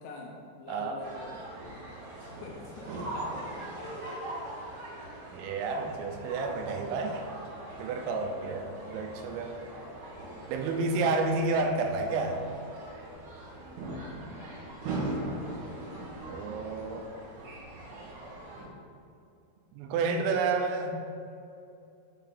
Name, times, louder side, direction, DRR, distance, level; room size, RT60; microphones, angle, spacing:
voice 1, 0.0-1.5 2.2-4.2 14.0-14.5, left 3 dB, 80° left, -2 dB, 2.7 m, -46 dB
voice 2, 0.7-1.0 5.3-7.3 7.8-9.6 10.5-12.5 16.2-17.1 19.7-20.9, right 3 dB, 90° right, 5 dB, 3.3 m, -30 dB
sound 1, 1.0-18.6, right 1 dB, 55° right, 2.6 m, -40 dB
7.3 x 5.6 x 3.8 m, 2.6 s
omnidirectional pair, 5.8 m